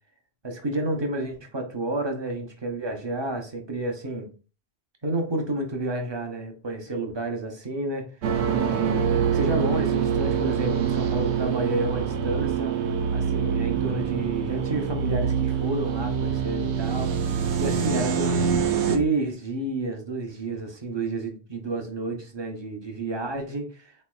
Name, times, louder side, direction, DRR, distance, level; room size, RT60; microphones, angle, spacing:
voice 1, 0.4-4.3 5.0-8.1 8.5-9.1 9.3-17.1 17.6-24.0, right 2 dB, 30° right, 4 dB, 0.6 m, -30 dB
sound 1, 8.2-19.0, right 7 dB, 85° right, 0.9 m, -25 dB
3.9 x 3.1 x 2.2 m, 0.35 s
omnidirectional pair, 1.1 m